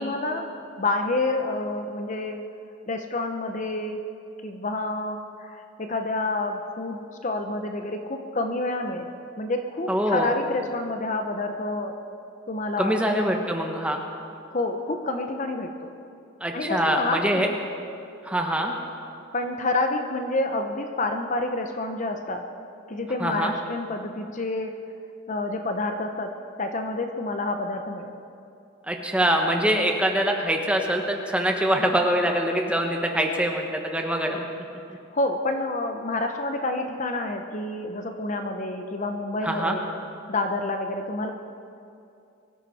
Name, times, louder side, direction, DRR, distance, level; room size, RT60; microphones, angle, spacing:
voice 1, 0.0-2.4 2.9-4.0 4.4-9.1 9.4-11.9 12.5-13.0 14.5-15.9 16.5-17.6 19.3-22.4 22.9-24.7 25.3-26.3 26.6-28.1 35.1-39.8 40.3-41.3, left 2 dB, 40° left, 5 dB, 0.8 m, -28 dB
voice 2, 9.9-10.3 12.8-14.0 16.4-17.5 18.2-18.7 23.2-23.5 28.9-34.4 39.4-39.8, equal, 5° right, 2 dB, 1.3 m, -24 dB
23.0 x 14.0 x 4.2 m, 2.6 s
head